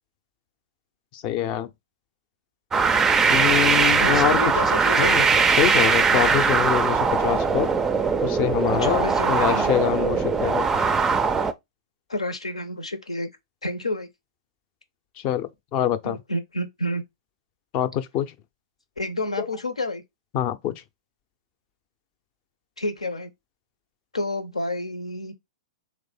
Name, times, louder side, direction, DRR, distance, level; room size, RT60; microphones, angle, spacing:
voice 1, 1.1-1.7 3.3-4.5 5.0-5.2 5.6-7.7 8.2-10.9 15.2-16.2 17.7-18.3 19.4-19.5 20.3-20.8, left 10 dB, 35° left, 0.5 m, -25 dB
sound 1, 2.7-11.5, right 5 dB, 15° right, 0.4 m, -21 dB
voice 2, 3.9-5.4 8.8-9.7 12.1-13.3 13.6-14.1 16.0-17.0 19.0-20.0 22.8-23.3 24.1-25.3, left 1 dB, 85° left, 0.8 m, -29 dB
3.3 x 3.2 x 4.2 m
figure-of-eight pair, 105°, 3 cm